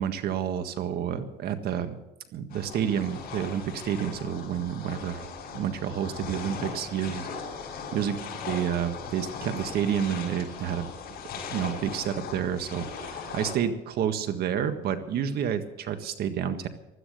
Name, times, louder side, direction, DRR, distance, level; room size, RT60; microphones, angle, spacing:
voice 1, 0.0-2.0 2.3-5.3 5.5-7.3 7.9-8.2 8.5-10.9 11.5-16.7, right 9 dB, 70° right, 9 dB, 1.7 m, -29 dB
sound 1, 2.5-13.6, left 5 dB, 65° left, 5.8 m, -39 dB
16.5 x 12.5 x 6.7 m, 0.93 s
cardioid pair, 110°, 17 cm